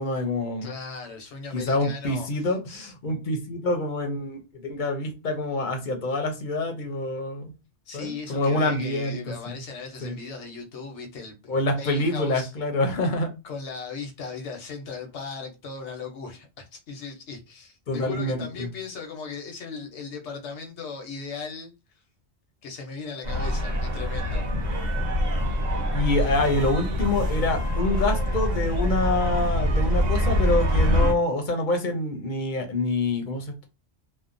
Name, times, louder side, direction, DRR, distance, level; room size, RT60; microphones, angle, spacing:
voice 1, 0.0-0.7 1.5-7.5 7.9-9.2 10.0-10.2 11.5-13.3 17.9-18.7 25.9-33.7, left 2 dB, 55° left, 0.7 m, -26 dB
voice 2, 0.6-2.3 2.7-2.9 7.9-12.5 13.4-21.7 22.6-24.4, left 4 dB, 85° left, 1.0 m, -37 dB
sound 1, 23.2-31.1, equal, 40° right, 1.0 m, -24 dB
2.7 x 2.0 x 2.5 m
omnidirectional pair, 1.1 m